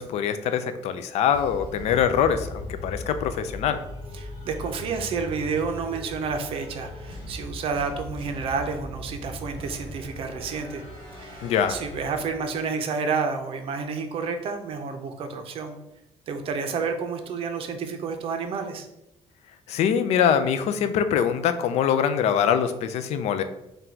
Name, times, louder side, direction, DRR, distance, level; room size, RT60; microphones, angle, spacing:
voice 1, 0.0-3.8 11.4-11.8 19.7-23.4, left 8 dB, 65° left, 10 dB, 0.4 m, -23 dB
sound 1, 1.3-12.7, left 1 dB, 40° left, 1.3 m, -39 dB
voice 2, 4.1-10.8 11.2-15.7 16.3-18.9, right 5 dB, 50° right, 6 dB, 0.5 m, -30 dB
3.9 x 2.3 x 4.3 m, 0.90 s
cardioid pair, 160°, 12 cm